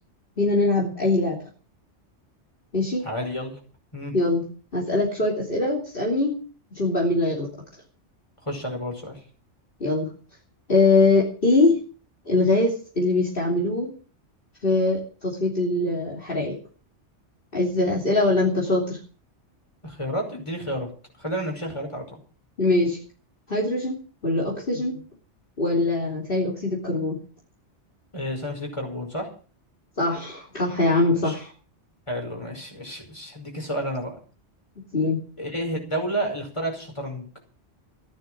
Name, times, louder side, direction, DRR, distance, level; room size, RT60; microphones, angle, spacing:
voice 1, 0.4-1.4 2.7-3.0 4.1-4.5 4.7-6.4 6.7-7.5 9.8-10.1 10.7-11.8 12.3-13.9 14.6-16.6 17.5-19.0 22.6-23.0 23.5-25.0 25.6-27.2 30.0-31.5 34.9-35.2, left 2 dB, 50° left, -3 dB, 3.3 m, -22 dB
voice 2, 3.0-3.5 3.9-4.1 8.5-9.2 19.8-20.9 21.2-22.2 28.1-29.3 31.1-31.4 32.1-34.2 35.4-37.2, equal, 25° left, 2 dB, 5.5 m, -30 dB
14.5 x 12.0 x 6.3 m, 0.40 s
omnidirectional pair, 1.2 m